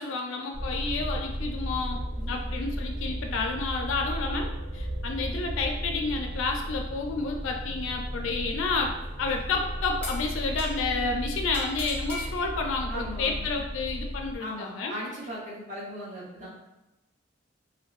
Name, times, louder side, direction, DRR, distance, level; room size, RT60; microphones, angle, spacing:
voice 1, 0.0-2.0 2.3-14.9, left 3 dB, 80° left, 2 dB, 0.3 m, -30 dB
sound 1, 0.5-14.4, equal, 90° right, 0.7 m, -34 dB
sound 2, 9.3-9.5 10.0-11.0 11.5-12.3, left 1 dB, 5° left, 0.5 m, -39 dB
voice 2, 10.8-11.1 12.9-13.5 14.4-16.5, equal, 35° right, -6 dB, 0.7 m, -38 dB
2.6 x 2.1 x 2.3 m, 0.97 s
head